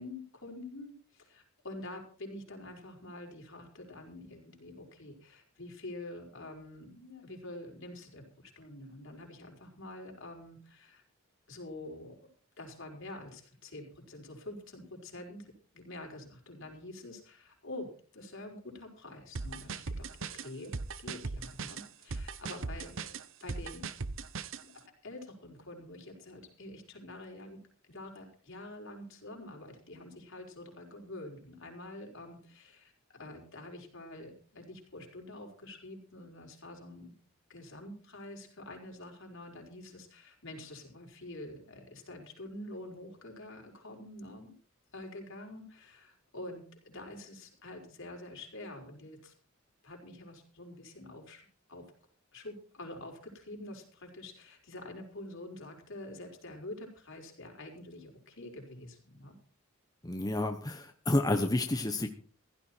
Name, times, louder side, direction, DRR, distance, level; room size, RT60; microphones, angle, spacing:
voice 1, 0.0-11.0 11.5-12.1 12.6-20.7 21.0-23.9 24.6-27.6 27.9-37.1 37.5-44.5 44.9-49.3 49.8-51.9 52.3-59.4, left 1 dB, 65° left, 2 dB, 5.1 m, -47 dB
sound 1, 19.4-24.6, right 4 dB, 65° right, 0.9 m, -38 dB
voice 2, 60.0-62.1, left 1 dB, 20° left, 5 dB, 1.1 m, -30 dB
16.0 x 13.0 x 4.5 m, 0.42 s
head